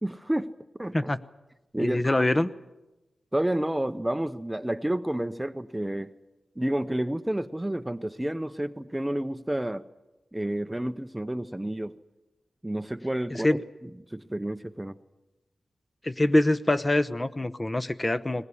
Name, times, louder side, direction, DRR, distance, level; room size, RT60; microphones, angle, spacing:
voice 1, 0.0-0.5 0.8-1.0 1.7-2.2 3.3-6.1 6.6-9.8 10.3-11.9 12.6-13.5 13.8-15.0, right 1 dB, 10° right, 12 dB, 0.7 m, -30 dB
voice 2, 1.8-2.5 13.3-13.6 16.0-18.4, left 1 dB, 20° left, 12 dB, 0.9 m, -24 dB
21.5 x 19.0 x 9.9 m, 1.1 s
wide cardioid pair, 90°, 0 cm